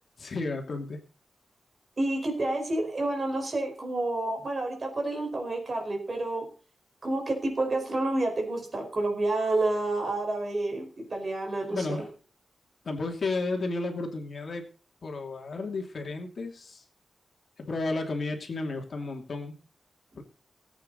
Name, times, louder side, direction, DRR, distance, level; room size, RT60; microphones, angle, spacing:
voice 1, 0.2-1.0 11.7-12.1 12.8-14.6 15.0-16.8 17.6-19.6 20.2-20.3, left 3 dB, 50° left, 3 dB, 2.8 m, -32 dB
voice 2, 2.0-6.4 7.0-12.0, right 2 dB, 35° right, 3 dB, 4.8 m, -29 dB
19.5 x 8.7 x 4.1 m, 0.37 s
wide cardioid pair, 180°, 0 cm